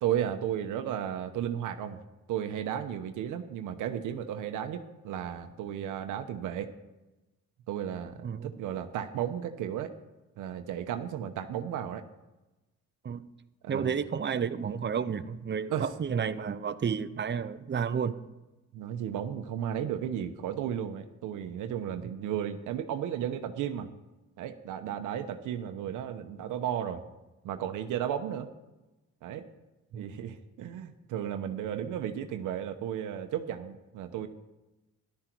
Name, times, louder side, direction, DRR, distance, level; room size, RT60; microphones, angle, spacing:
voice 1, 0.0-2.0 2.3-6.7 7.7-9.9 10.4-12.0 13.6-13.9 15.7-15.9 18.7-23.9 24.4-27.0 27.4-28.5 29.2-29.5 29.9-34.3, right 10 dB, 90° right, 8 dB, 1.0 m, -34 dB
voice 2, 13.7-18.1 29.9-30.1, right 7 dB, 35° right, 13 dB, 0.8 m, -31 dB
14.0 x 12.0 x 4.6 m, 1.0 s
cardioid pair, 90°, 30 cm